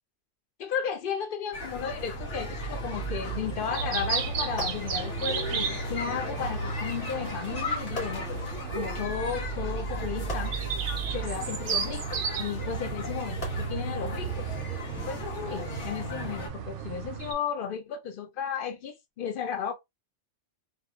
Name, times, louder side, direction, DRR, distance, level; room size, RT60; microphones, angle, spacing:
voice 1, 0.6-8.4 8.7-10.6 11.1-14.6 15.1-19.7, left 7 dB, 60° left, 0.6 m, -34 dB
sound 1, 1.5-16.5, right 1 dB, 80° left, 1.2 m, -36 dB
sound 2, 1.7-17.3, right 5 dB, 60° right, 0.7 m, -35 dB
sound 3, 4.6-5.6 6.9-7.0 7.9-9.0 10.3-11.6 13.4-14.4 15.2-15.4, left 1 dB, 30° left, 1.1 m, -43 dB
2.6 x 2.3 x 2.3 m
omnidirectional pair, 1.2 m